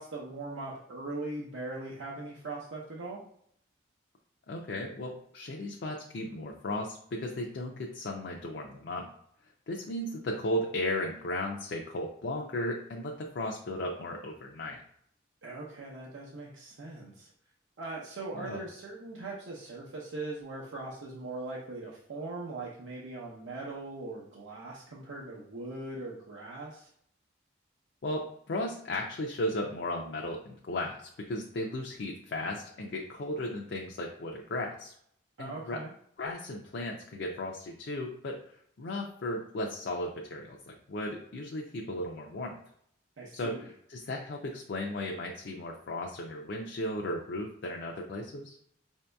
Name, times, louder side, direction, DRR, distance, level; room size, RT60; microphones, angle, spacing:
voice 1, 0.0-3.2 15.4-17.3 17.8-26.9 35.4-35.9 43.2-43.7, right 2 dB, 85° right, -5 dB, 0.7 m, -40 dB
voice 2, 4.5-9.1 9.7-14.8 18.3-18.6 28.0-34.9 35.4-35.8 36.2-38.4 38.8-42.6 43.3-48.6, left 1 dB, 60° left, 0 dB, 0.4 m, -35 dB
5.1 x 2.7 x 2.2 m, 0.67 s
head